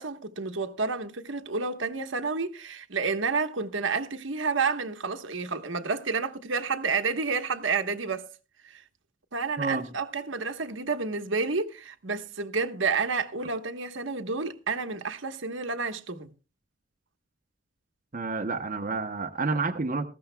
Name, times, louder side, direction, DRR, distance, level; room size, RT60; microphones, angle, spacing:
voice 1, 0.0-8.3 8.6-8.8 9.3-16.3, right 4 dB, 75° right, 1.2 m, -30 dB
voice 2, 18.1-20.1, right 3 dB, 40° right, 0.8 m, -29 dB
19.0 x 15.0 x 2.2 m
head